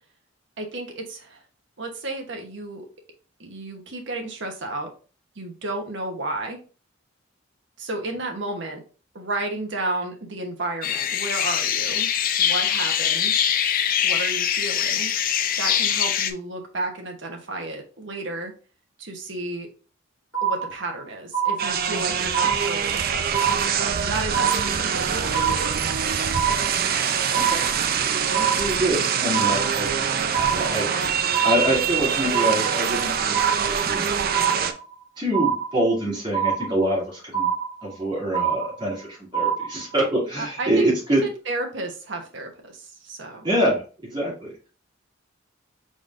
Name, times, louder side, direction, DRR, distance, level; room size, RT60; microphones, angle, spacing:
voice 1, 0.6-1.4 1.8-2.9 3.4-4.9 5.3-6.6 7.8-8.8 9.1-12.1 12.4-13.5 14.0-15.1 15.6-18.5 19.0-19.7 20.4-26.1 40.4-40.9 41.2-43.5, right 2 dB, 65° right, 3 dB, 1.1 m, -32 dB
sound 1, 10.8-16.3, left 9 dB, 45° left, 0.4 m, -23 dB
sound 2, 20.3-21.0 21.3-22.0 22.3-23.0 23.3-24.0 24.3-25.0 25.3-26.0 26.3-27.0 27.3-28.0 28.3-29.0 29.3-30.0 30.3-31.0 31.3-32.0 32.3-33.0 33.3-34.0 34.3-35.0 35.3-36.0 36.3-37.0 37.3-38.0 38.3-39.0 39.3-40.0, right 7 dB, 75° left, 1.1 m, -26 dB
sound 3, 21.6-34.7, right 7 dB, 50° right, 0.4 m, -24 dB
voice 2, 27.3-27.6 28.3-30.1 30.5-34.1 35.2-37.5 37.8-41.2 43.4-44.5, right 1 dB, 25° right, -5 dB, 2.5 m, -25 dB
5.0 x 4.0 x 2.5 m, 0.36 s
head